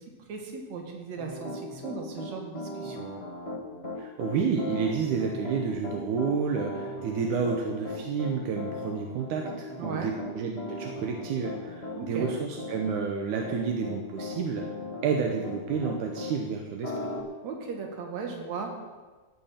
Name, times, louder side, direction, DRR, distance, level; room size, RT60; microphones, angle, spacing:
voice 1, 0.3-3.1 9.8-10.1 12.0-12.3 17.4-18.7, right 5 dB, 65° right, 2 dB, 2.9 m, -37 dB
Piano, 1.2-16.4 16.8-17.2, left 1 dB, 30° left, 1.1 m, -38 dB
voice 2, 4.0-14.6 15.0-16.9, right 6 dB, 80° right, 2 dB, 2.4 m, -30 dB
14.0 x 8.8 x 5.8 m, 1.3 s
omnidirectional pair, 3.5 m